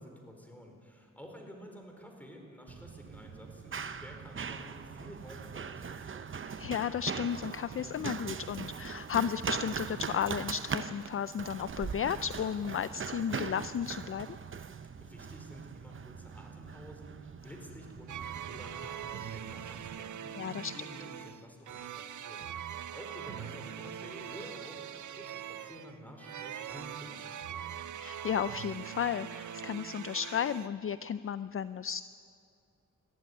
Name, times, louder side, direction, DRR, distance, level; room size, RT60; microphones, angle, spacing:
voice 1, 0.0-6.4 15.0-27.8, equal, 5° left, 2 dB, 4.4 m, -50 dB
Run, 2.7-20.0, right 6 dB, 40° right, 0.8 m, -41 dB
voice 2, 6.4-14.4 20.3-20.7 28.0-32.0, left 8 dB, 45° left, 15 dB, 0.4 m, -34 dB
sound 1, 18.1-30.7, right 9 dB, 70° right, 0.7 m, -42 dB
20.5 x 14.5 x 9.7 m, 2.6 s
wide cardioid pair, 95°, 31 cm